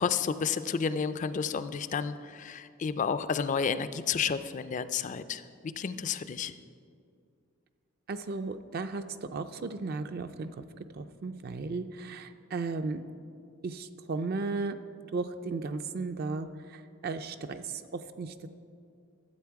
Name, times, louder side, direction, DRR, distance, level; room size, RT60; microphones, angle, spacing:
voice 1, 0.0-6.5, left 6 dB, 35° left, 12 dB, 0.3 m, -31 dB
voice 2, 8.1-10.6 10.9-13.0 13.6-14.8 15.1-18.3, right 3 dB, 45° right, 9 dB, 0.4 m, -35 dB
13.0 x 7.8 x 4.7 m, 2.4 s
head